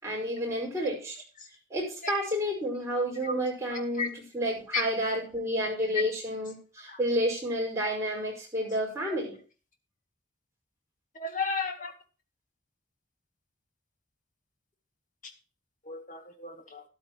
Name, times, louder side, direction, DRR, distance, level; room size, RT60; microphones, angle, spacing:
voice 1, 0.0-1.2 1.7-9.4, equal, 15° right, -2 dB, 5.2 m, -30 dB
voice 2, 3.7-4.1 11.2-11.9 15.9-16.8, left 4 dB, 40° left, 4 dB, 2.1 m, -34 dB
13.0 x 11.5 x 3.0 m, 0.35 s
head